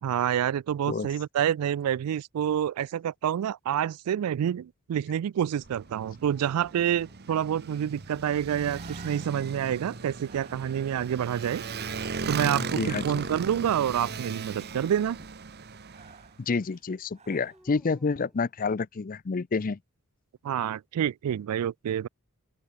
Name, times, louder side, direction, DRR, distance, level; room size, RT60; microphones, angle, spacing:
voice 1, 0.0-11.6 12.3-15.2 20.4-22.1, right 9 dB, 85° right, 0.3 m, -28 dB
Motorcycle, 5.6-16.3, right 4 dB, 45° right, 0.9 m, -37 dB
Breathing, 8.3-17.7, right 5 dB, 30° right, 3.0 m, -57 dB
voice 2, 12.8-13.3 16.4-19.8, left 4 dB, 40° left, 0.5 m, -29 dB
sound 1, 17.5-19.1, equal, ahead, 6.3 m, -62 dB
open air
head